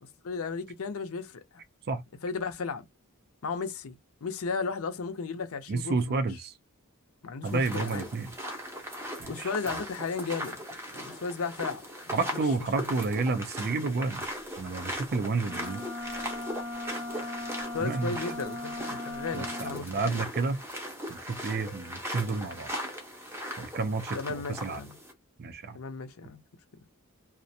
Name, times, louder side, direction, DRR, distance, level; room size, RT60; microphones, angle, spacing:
voice 1, 0.2-1.6 2.2-2.8 3.4-4.0 4.2-6.2 7.2-8.1 9.3-10.6 10.9-12.4 12.8-13.0 17.7-20.2 24.1-25.0 25.7-26.4, left 4 dB, 65° left, 0.6 m, -35 dB
voice 2, 5.7-6.5 7.4-8.3 9.2-9.5 12.1-14.2 14.6-15.8 17.8-18.2 19.3-20.6 21.1-22.7 23.6-24.8 25.4-25.8, right 3 dB, 45° right, 0.4 m, -30 dB
sound 1, 7.4-25.1, equal, 10° right, 0.7 m, -39 dB
sound 2, 15.4-19.8, left 2 dB, 90° left, 0.8 m, -38 dB
2.4 x 2.0 x 2.6 m
head